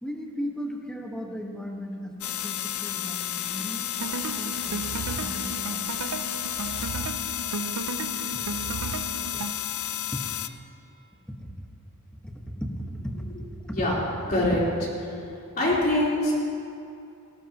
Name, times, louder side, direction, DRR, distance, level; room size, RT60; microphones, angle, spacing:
voice 1, 0.0-3.9 4.3-4.8 5.2-5.8 9.3-9.4 10.1-10.2 11.3-11.5 12.2-13.3 13.7-13.8, equal, 5° left, 0 dB, 1.4 m, -36 dB
sound 1, 2.2-10.5, left 11 dB, 70° left, 0.6 m, -32 dB
sound 2, 4.0-9.5, right 4 dB, 80° right, 0.6 m, -34 dB
voice 2, 14.3-14.6 15.0-16.4, left 1 dB, 40° left, -6 dB, 3.9 m, -24 dB
19.0 x 17.5 x 3.0 m, 2.6 s
head